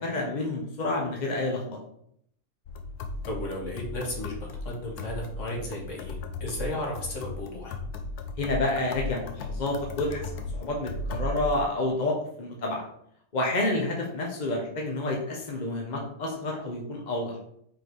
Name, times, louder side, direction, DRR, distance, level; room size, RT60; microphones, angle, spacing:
voice 1, 0.0-1.8 8.4-12.8 13.3-17.4, left 2 dB, 35° left, 0 dB, 1.0 m, -29 dB
sound 1, 2.7-11.6, left 2 dB, 70° left, 1.2 m, -36 dB
voice 2, 3.3-7.8, left 1 dB, 50° left, -1 dB, 1.8 m, -34 dB
5.1 x 4.5 x 4.6 m, 0.71 s
omnidirectional pair, 1.7 m